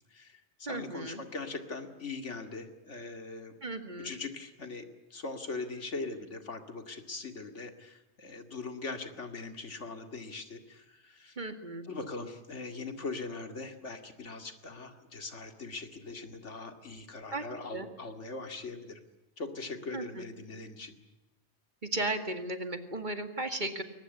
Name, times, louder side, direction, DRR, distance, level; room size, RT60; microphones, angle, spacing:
voice 1, 0.1-3.5 4.0-11.4 11.8-19.0 19.4-21.0, left 3 dB, 75° left, 7 dB, 2.5 m, -41 dB
voice 2, 0.7-1.2 3.6-4.1 11.4-11.8 17.3-17.4 17.7-17.9 19.9-20.2 21.9-23.8, right 2 dB, 40° right, 8 dB, 2.3 m, -35 dB
22.0 x 19.5 x 9.8 m, 0.97 s
omnidirectional pair, 1.2 m